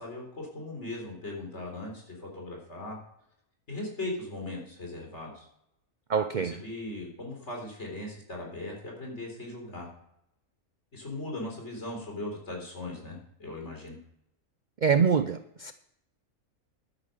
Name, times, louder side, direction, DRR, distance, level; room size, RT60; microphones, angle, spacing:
voice 1, 0.0-3.0 3.7-5.5 6.4-9.9 10.9-14.0, left 2 dB, 50° left, 0 dB, 4.3 m, -38 dB
voice 2, 6.1-6.6 14.8-15.7, right 6 dB, 55° right, 11 dB, 0.5 m, -25 dB
11.5 x 9.4 x 6.6 m, 0.77 s
omnidirectional pair, 1.5 m